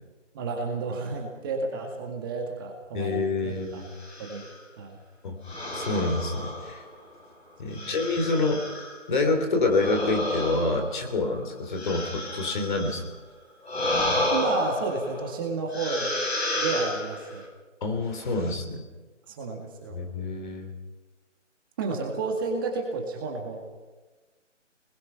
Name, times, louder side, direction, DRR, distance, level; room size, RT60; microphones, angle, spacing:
voice 1, 0.3-3.8 4.2-4.4 4.8-5.0 7.7-8.0 14.3-16.2 16.5-17.4 19.3-20.0 21.8-23.6, right 3 dB, 20° right, 1 dB, 1.9 m, -31 dB
voice 2, 2.9-3.9 5.2-5.4 5.7-6.8 7.6-13.0 17.8-18.8 19.9-20.7, left 3 dB, 40° left, 4 dB, 3.4 m, -27 dB
sound 1, 3.9-4.6 5.5-7.1 7.7-9.0 9.7-13.1 13.6-15.3 15.7-17.4, left 1 dB, 60° left, 7.7 m, -31 dB
26.5 x 21.0 x 5.7 m, 1.2 s
figure-of-eight pair, 160°, 37 cm